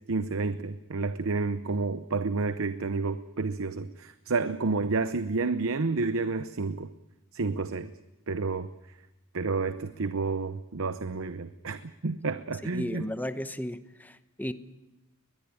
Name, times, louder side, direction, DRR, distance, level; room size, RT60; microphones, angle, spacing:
voice 1, 0.1-6.9 7.3-7.9 8.3-8.7 9.3-13.1, right 3 dB, 60° right, 11 dB, 0.8 m, -30 dB
voice 2, 12.7-14.5, left 1 dB, 10° left, 11 dB, 0.9 m, -34 dB
21.5 x 21.0 x 8.7 m, 1.0 s
head